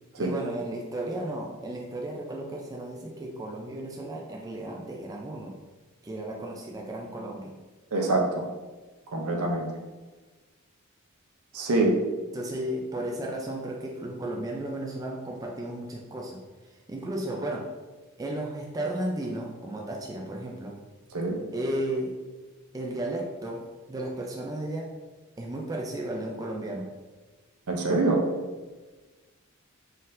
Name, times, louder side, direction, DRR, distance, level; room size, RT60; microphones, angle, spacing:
voice 1, 0.2-5.6 6.0-7.6 12.3-16.4 16.7-17.7 18.2-20.8 21.5-22.1 22.7-24.9 25.4-26.9, right 1 dB, 15° right, -1 dB, 0.3 m, -34 dB
voice 2, 7.9-8.4 9.1-9.7 11.5-11.9 21.1-21.3 27.7-28.2, right 2 dB, 75° right, 1 dB, 0.6 m, -25 dB
4.2 x 3.8 x 2.5 m, 1.3 s
head